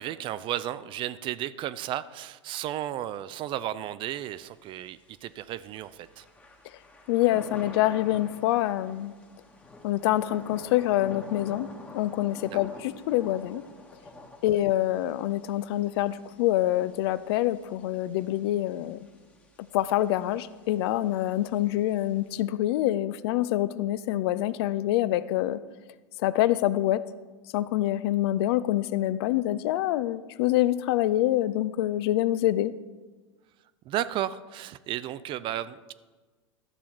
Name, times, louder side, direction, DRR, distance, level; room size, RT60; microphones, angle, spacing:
voice 1, 0.0-6.3 12.5-12.6 33.9-35.9, right 12 dB, 35° right, 15 dB, 0.3 m, -34 dB
Thunder / Rain, 4.2-22.4, left 2 dB, 10° left, 1.1 m, -49 dB
voice 2, 7.1-9.1 9.8-11.7 11.9-13.6 14.4-19.1 19.7-25.6 26.2-27.0 27.5-32.7, left 14 dB, 55° left, 15 dB, 0.4 m, -26 dB
12.5 x 6.9 x 3.0 m, 1.3 s
hypercardioid pair, 100°, 16 cm